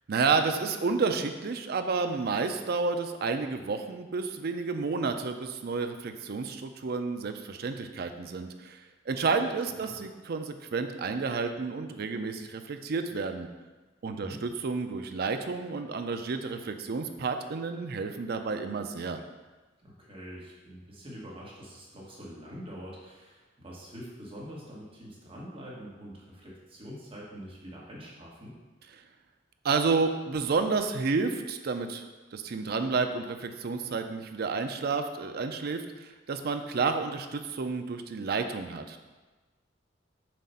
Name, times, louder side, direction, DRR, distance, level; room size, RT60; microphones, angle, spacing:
voice 1, 0.1-8.8 9.1-13.5 14.0-19.2 29.6-32.0 32.3-39.0, right 4 dB, 55° right, 7 dB, 0.5 m, -30 dB
voice 2, 9.1-9.4 9.6-10.0 14.1-14.4 19.8-28.5, equal, 30° right, -5 dB, 1.5 m, -45 dB
7.5 x 2.5 x 5.4 m, 1.2 s
head